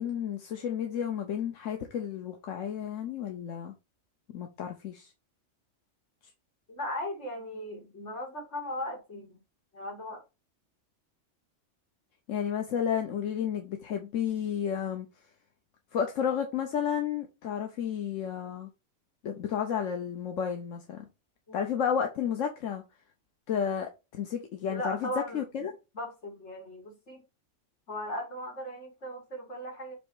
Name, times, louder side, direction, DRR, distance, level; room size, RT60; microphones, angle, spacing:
voice 1, 0.0-3.7 4.3-5.1 12.3-15.1 15.9-18.7 19.2-21.0 21.5-22.8 23.5-25.1 25.3-25.7, left 8 dB, 90° left, 1.2 m, -32 dB
voice 2, 6.7-9.4 9.7-10.2 21.5-21.8 24.7-25.4 25.9-27.2 27.9-29.9, left 1 dB, 65° left, 2.8 m, -37 dB
7.6 x 3.1 x 4.8 m
omnidirectional pair, 1.3 m